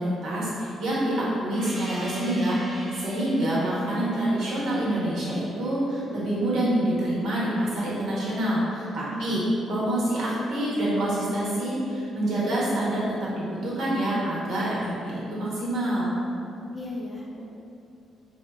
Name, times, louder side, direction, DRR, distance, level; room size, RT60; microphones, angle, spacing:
voice 1, 0.0-9.4 9.7-16.1, right 1 dB, 75° right, -7 dB, 0.8 m, -26 dB
Gong, 1.5-6.5, equal, 10° right, 0.7 m, -41 dB
voice 2, 16.7-17.4, left 1 dB, 15° left, -3 dB, 0.4 m, -36 dB
3.8 x 2.1 x 2.2 m, 2.6 s
cardioid pair, 90°, 0 cm